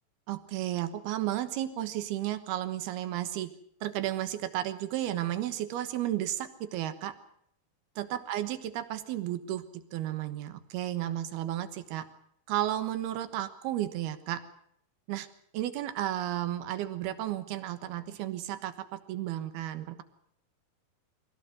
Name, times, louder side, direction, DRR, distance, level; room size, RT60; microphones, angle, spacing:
voice 1, 0.3-3.5 3.8-7.1 8.0-12.1 12.5-14.4 15.1-15.3 15.5-20.0, right 13 dB, 85° right, 10 dB, 3.3 m, -33 dB
24.5 x 16.5 x 7.9 m, 0.69 s
omnidirectional pair, 4.4 m